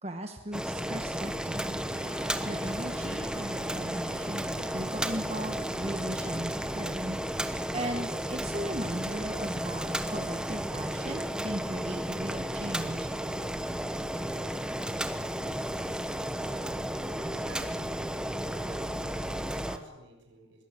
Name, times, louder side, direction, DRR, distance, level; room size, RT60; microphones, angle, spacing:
voice 1, 0.0-13.1, right 1 dB, 30° right, 5 dB, 1.3 m, -38 dB
Boiling, 0.5-19.8, equal, 5° right, 1.1 m, -33 dB
sound 1, 1.9-8.1, left 2 dB, 40° left, 3.0 m, -51 dB
voice 2, 17.2-17.9 18.5-20.6, right 2 dB, 65° right, 2 dB, 7.0 m, -50 dB
22.0 x 18.0 x 9.0 m, 1.0 s
head